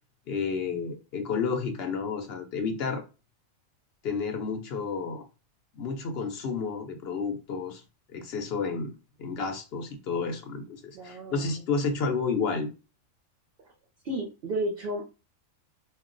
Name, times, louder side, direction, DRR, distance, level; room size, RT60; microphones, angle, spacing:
voice 1, 0.3-3.0 4.0-5.3 5.7-7.8 8.1-8.9 9.2-12.7, left 5 dB, 60° left, 0.7 m, -31 dB
voice 2, 10.9-11.5 14.0-15.0, right 1 dB, 55° right, 0.7 m, -32 dB
2.3 x 2.1 x 3.7 m
omnidirectional pair, 1.4 m